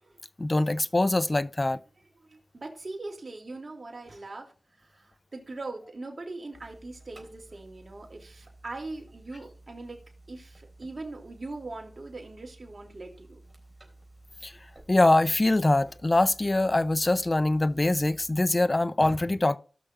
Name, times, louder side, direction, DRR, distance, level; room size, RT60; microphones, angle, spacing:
voice 1, 0.4-1.8 14.4-14.5 14.9-19.6, left 2 dB, 30° left, 0.6 m, -23 dB
voice 2, 2.2-4.5 4.8-10.0 10.3-13.4, right 2 dB, 55° right, 3.0 m, -41 dB
sound 1, 6.5-18.4, right 2 dB, 25° right, 3.7 m, -54 dB
18.0 x 6.2 x 2.5 m
wide cardioid pair, 60°, 0 cm